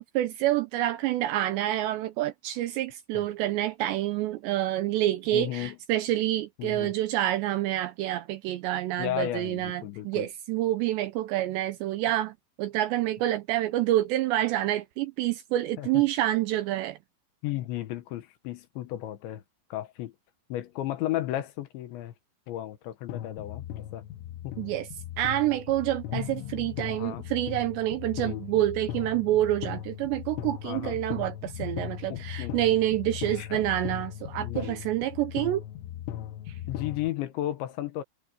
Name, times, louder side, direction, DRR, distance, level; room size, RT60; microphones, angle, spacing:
voice 1, 0.1-17.0 24.6-24.9 25.2-35.6 36.5-36.6, right 14 dB, 85° right, 2.6 m, -27 dB
voice 2, 5.3-5.8 6.6-6.9 9.0-10.3 15.8-16.0 17.4-19.4 19.7-20.1 20.5-22.1 22.5-24.0 24.4-24.6 27.0-27.3 28.2-28.4 30.6-31.0 32.1-32.6 33.3-33.6 34.4-34.8 36.7-38.0, left 14 dB, 75° left, 3.3 m, -34 dB
sound 1, 23.1-37.1, left 12 dB, 90° left, 3.3 m, -38 dB
omnidirectional pair, 5.7 m